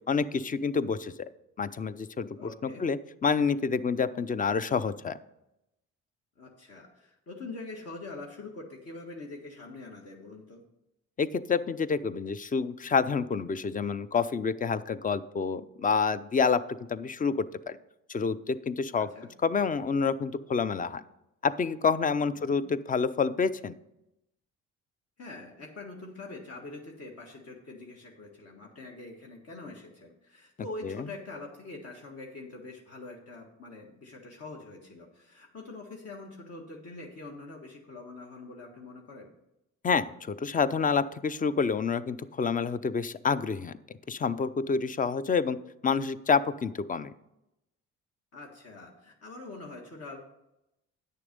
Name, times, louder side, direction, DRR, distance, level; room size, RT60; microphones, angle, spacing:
voice 1, 0.1-1.1 1.6-5.1 11.2-16.6 16.9-17.8 18.1-19.1 19.4-21.0 21.4-23.7 30.8-31.0 39.8-43.7 44.1-45.6 45.8-47.1, left 5 dB, 25° left, 15 dB, 0.5 m, -28 dB
voice 2, 2.4-2.8 6.4-10.6 19.0-19.3 22.3-22.6 25.2-39.3 48.3-50.2, left 2 dB, 55° left, -1 dB, 1.6 m, -44 dB
9.4 x 6.7 x 5.2 m, 0.87 s
cardioid pair, 90°, 30 cm